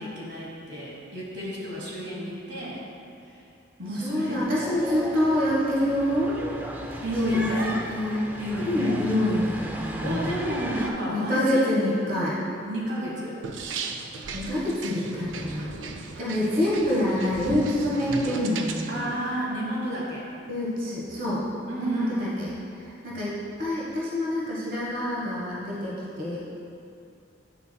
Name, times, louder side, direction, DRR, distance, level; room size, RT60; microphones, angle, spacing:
voice 1, 0.0-2.8 3.3-3.4 3.8-4.5 7.0-7.7 8.4-9.0 10.0-11.6 12.6-13.4 18.9-20.3 21.7-22.4, right 1 dB, 65° right, -5 dB, 1.3 m, -31 dB
voice 2, 4.0-6.4 7.2-8.2 8.6-10.3 11.1-12.4 14.3-15.7 16.2-19.1 20.5-21.4 21.8-22.5 22.8-26.4, left 1 dB, 45° right, -6 dB, 1.3 m, -26 dB
sound 1, 4.3-10.9, right 1 dB, 10° right, 0.4 m, -36 dB
sound 2, 13.4-18.9, right 4 dB, 80° right, 0.5 m, -36 dB
9.2 x 6.8 x 2.3 m, 2.5 s
head